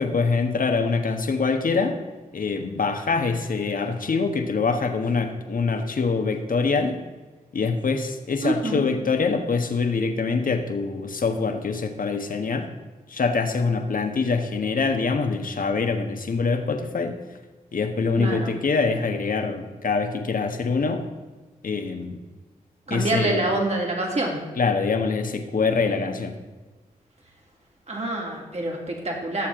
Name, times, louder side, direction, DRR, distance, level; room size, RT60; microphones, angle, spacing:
voice 1, 0.0-2.0 2.3-7.0 7.5-12.7 13.1-17.2 17.7-21.0 21.6-22.2 22.9-23.4 24.6-26.3, left 4 dB, 60° left, 6 dB, 1.4 m, -24 dB
voice 2, 8.4-8.9 18.2-18.5 22.9-24.4 27.9-29.5, right 2 dB, 45° right, -1 dB, 3.3 m, -26 dB
16.5 x 7.3 x 3.8 m, 1.3 s
supercardioid pair, 40°, 16 cm